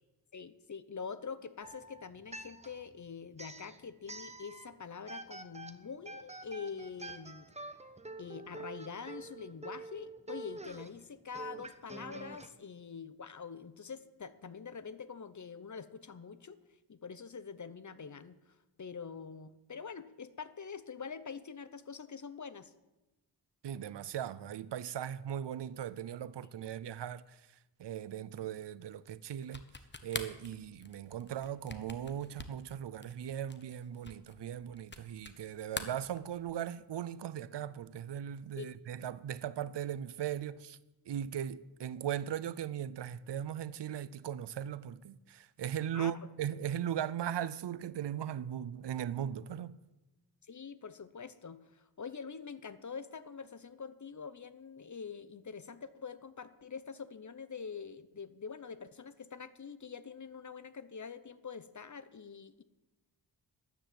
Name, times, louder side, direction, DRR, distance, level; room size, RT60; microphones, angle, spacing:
voice 1, 0.3-7.5 8.2-16.6 16.9-22.7 38.6-38.7 45.9-46.1 50.4-62.6, left 6 dB, 40° left, 0.9 m, -45 dB
sound 1, 1.6-2.9 3.3-4.7 5.1-12.5, right 2 dB, 15° right, 1.0 m, -47 dB
voice 2, 23.6-27.4 27.8-29.6 30.0-40.8 41.1-49.8, right 10 dB, 65° right, 0.7 m, -38 dB
sound 2, 29.4-35.4 35.7-36.7, left 3 dB, 25° left, 1.2 m, -45 dB
13.5 x 10.5 x 7.8 m
wide cardioid pair, 115°, 44 cm